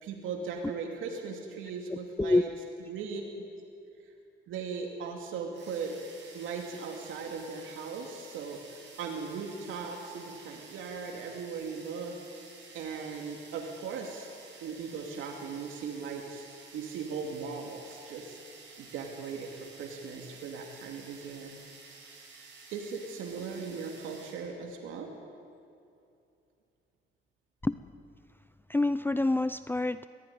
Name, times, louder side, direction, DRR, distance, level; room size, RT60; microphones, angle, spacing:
voice 1, 0.0-2.5 2.9-3.5 4.5-6.0 6.3-8.6 9.0-12.1 12.7-14.3 14.6-16.5 16.7-18.4 18.8-21.6 22.7-25.1, right 5 dB, 85° right, 1 dB, 2.7 m, -38 dB
voice 2, 1.9-2.4 27.6-27.8 28.7-30.1, left 2 dB, 10° left, 13 dB, 0.5 m, -27 dB
sound 1, 5.5-24.5, right 4 dB, 65° right, 7.4 m, -52 dB
22.0 x 16.0 x 9.6 m, 2.6 s
cardioid pair, 90°, 20 cm